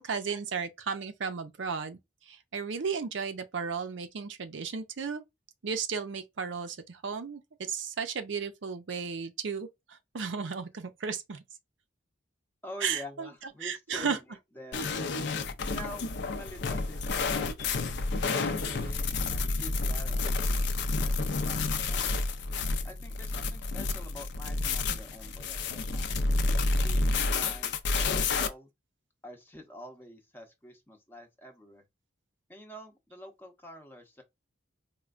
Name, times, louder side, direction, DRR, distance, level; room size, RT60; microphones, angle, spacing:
voice 1, 0.0-5.2 5.6-11.4 12.8-13.3 13.6-14.2, right 6 dB, 65° right, 0.5 m, -34 dB
voice 2, 12.6-14.2 14.6-14.9 15.7-17.8 18.3-22.1 22.8-26.2 26.8-28.7 29.2-31.8 32.5-34.2, left 1 dB, 10° left, 0.7 m, -47 dB
sound 1, 14.7-28.5, left 3 dB, 60° left, 0.5 m, -30 dB
4.3 x 2.2 x 2.4 m
head